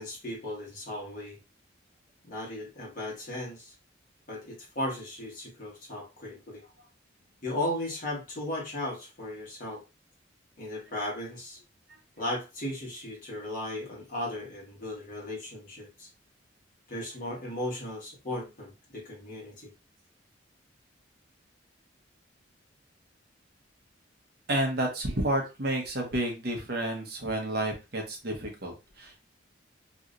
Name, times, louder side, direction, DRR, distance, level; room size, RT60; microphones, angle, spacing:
voice 1, 0.0-1.4 2.3-3.7 4.3-6.6 7.4-9.8 10.6-11.6 12.2-16.1 16.9-19.7, left 1 dB, 45° left, -4 dB, 1.5 m, -36 dB
voice 2, 24.5-29.2, right 1 dB, 55° right, 1 dB, 1.0 m, -30 dB
3.1 x 3.0 x 2.5 m, 0.27 s
head